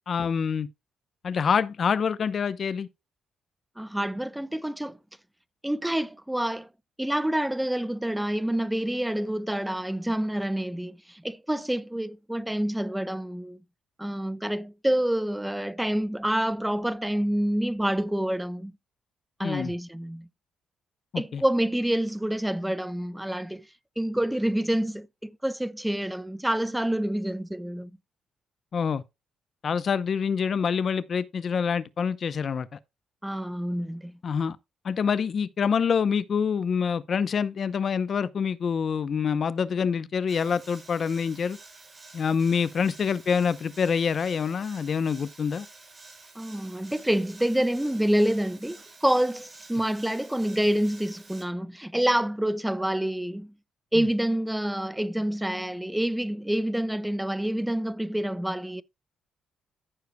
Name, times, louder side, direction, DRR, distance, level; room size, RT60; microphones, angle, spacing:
voice 1, 0.1-0.7 1.2-2.9 19.4-19.7 21.1-21.4 28.7-29.0 29.6-32.8 34.2-34.6 34.8-41.6 42.1-45.7 54.0-54.1, left 6 dB, 50° left, 0.7 m, -26 dB
voice 2, 3.8-5.0 5.6-6.7 7.0-13.6 14.0-18.7 19.4-20.3 21.2-23.6 24.0-27.9 33.2-34.2 46.4-53.5 53.9-58.8, right 1 dB, 5° right, 0.7 m, -27 dB
sound 1, 40.3-51.4, right 3 dB, 30° right, 4.2 m, -50 dB
14.5 x 6.6 x 2.2 m
cardioid pair, 90°, 0 cm